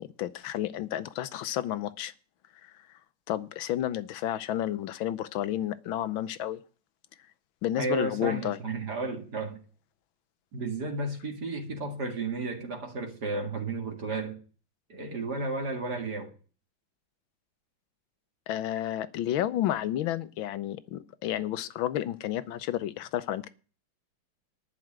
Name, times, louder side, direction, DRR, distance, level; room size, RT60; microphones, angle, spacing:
voice 1, 0.0-2.1 2.6-3.0 3.3-6.6 7.6-8.6 18.5-23.5, left 12 dB, 85° left, 1.6 m, -31 dB
voice 2, 7.8-9.6 10.5-14.4 14.9-16.3, right 3 dB, 55° right, 2.5 m, -33 dB
11.0 x 6.1 x 8.9 m
omnidirectional pair, 2.1 m